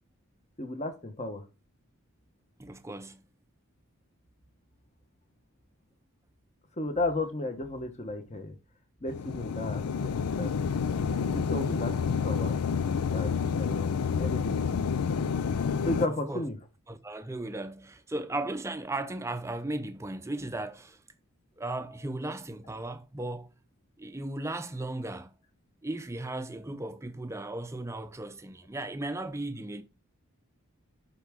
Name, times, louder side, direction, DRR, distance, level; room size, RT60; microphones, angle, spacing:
voice 1, 0.6-1.4 6.8-8.5 9.0-10.5 11.1-12.6 13.1-14.8 15.8-16.6, left 2 dB, 30° left, 1.1 m, -34 dB
voice 2, 2.6-3.2 11.3-11.4 16.0-16.5 16.9-21.0 21.6-23.6 24.0-25.3 25.8-29.8, right 2 dB, 15° right, 0.6 m, -36 dB
sound 1, 9.1-16.1, left 6 dB, 85° left, 0.5 m, -29 dB
11.0 x 4.5 x 3.6 m
head